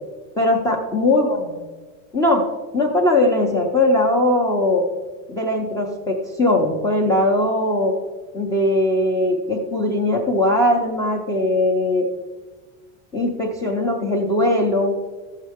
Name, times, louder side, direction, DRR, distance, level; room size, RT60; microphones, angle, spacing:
voice 1, 0.4-1.6 2.1-2.5 2.7-4.9 5.3-8.0 8.3-12.1 13.1-15.0, left 1 dB, 10° left, 0 dB, 0.4 m, -20 dB
13.0 x 7.3 x 3.4 m, 1.4 s
supercardioid pair, 170°, 36 cm